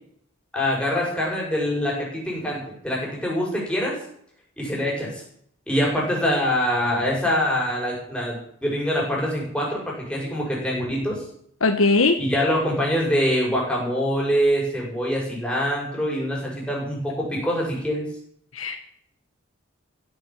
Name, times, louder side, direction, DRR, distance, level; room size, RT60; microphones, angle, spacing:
voice 1, 0.5-4.0 4.6-5.2 5.7-11.2 12.2-18.0, equal, 5° left, -3 dB, 6.0 m, -24 dB
voice 2, 11.6-12.2 18.5-18.8, left 3 dB, 85° left, 4 dB, 1.3 m, -19 dB
15.0 x 9.6 x 7.5 m, 0.66 s
head